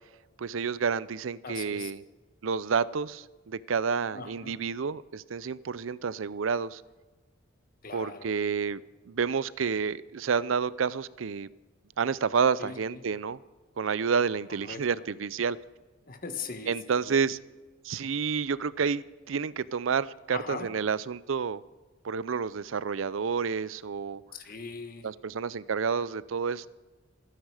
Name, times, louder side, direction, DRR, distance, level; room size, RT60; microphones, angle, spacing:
voice 1, 0.4-2.0 2.4-6.8 7.9-8.8 9.1-11.5 12.0-13.4 13.8-15.6 16.7-17.4 17.8-21.6 22.0-24.2 25.0-26.7, right 6 dB, 90° right, 19 dB, 0.5 m, -29 dB
voice 2, 1.4-1.9 4.1-4.6 7.8-8.3 12.6-12.8 14.6-14.8 16.1-17.1 20.3-20.7 24.3-25.0, left 4 dB, 45° left, 7 dB, 1.5 m, -40 dB
26.5 x 10.0 x 4.9 m, 1.2 s
head